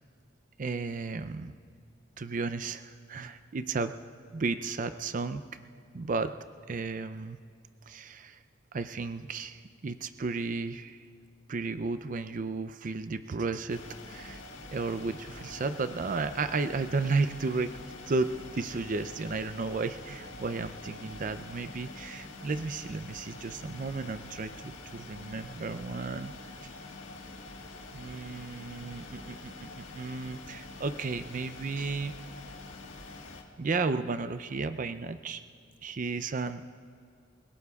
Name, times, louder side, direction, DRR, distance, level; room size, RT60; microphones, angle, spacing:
voice 1, 0.6-1.5 2.2-3.9 4.3-5.4 5.9-6.3 6.7-7.4 7.9-8.4 8.7-11.1 11.5-13.8 14.1-14.4 14.7-17.7 18.1-26.3 26.6-26.7 27.9-32.1 33.6-35.4 35.8-36.7, right 4 dB, 45° right, 10 dB, 0.4 m, -33 dB
sound 1, 13.7-33.4, left 2 dB, 90° left, 1.6 m, -46 dB
29.0 x 17.5 x 2.4 m, 2.3 s
head